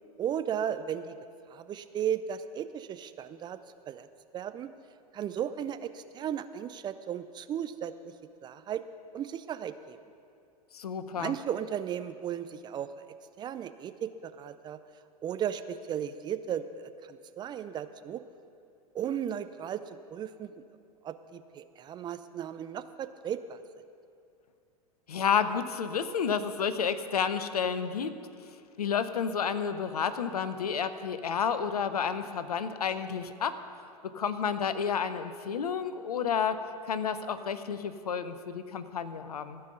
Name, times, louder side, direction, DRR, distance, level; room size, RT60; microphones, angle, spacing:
voice 1, 0.2-1.2 1.5-3.6 3.9-4.1 4.3-4.7 5.1-8.1 8.4-8.8 9.1-10.0 11.1-12.9 13.4-14.8 15.2-18.2 18.9-20.5 21.0-23.6, right 9 dB, 20° right, 11 dB, 0.4 m, -35 dB
voice 2, 10.7-11.3 25.1-28.2 28.8-33.6 34.0-36.6 36.8-39.6, left 7 dB, 75° left, 12 dB, 0.7 m, -30 dB
15.5 x 5.5 x 8.0 m, 2.4 s
figure-of-eight pair, 90°, 20 cm